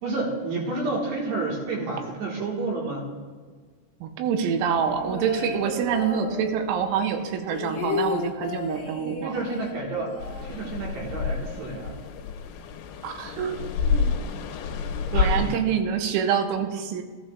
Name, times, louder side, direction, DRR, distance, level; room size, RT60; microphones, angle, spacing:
voice 1, 0.0-3.0 9.2-10.1 10.4-12.0 15.1-15.6, right 3 dB, 65° right, -3 dB, 3.0 m, -30 dB
voice 2, 4.0-9.3 13.0-14.1 15.1-17.0, right 7 dB, 85° right, 5 dB, 3.4 m, -26 dB
sound 1, 4.7-6.9 7.2-11.1 11.4-11.5 11.8-12.3, left 3 dB, 55° left, 1.0 m, -34 dB
sound 2, 10.2-15.5, left 5 dB, 85° left, 3.1 m, -28 dB
14.5 x 13.5 x 2.3 m, 1.5 s
omnidirectional pair, 5.9 m